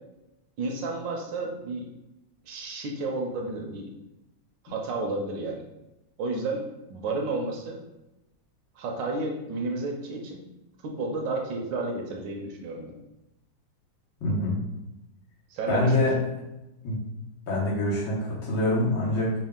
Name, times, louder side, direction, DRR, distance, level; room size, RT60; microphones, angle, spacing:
voice 1, 0.6-1.9 2.4-3.9 4.6-5.6 6.2-7.8 8.8-10.4 10.8-12.9 15.5-16.1, right 3 dB, 75° right, 1 dB, 1.3 m, -32 dB
voice 2, 14.2-14.6 15.7-16.2 16.8-17.0 17.5-19.3, left 1 dB, 80° left, -5 dB, 2.0 m, -25 dB
4.4 x 2.4 x 3.6 m, 0.95 s
omnidirectional pair, 2.1 m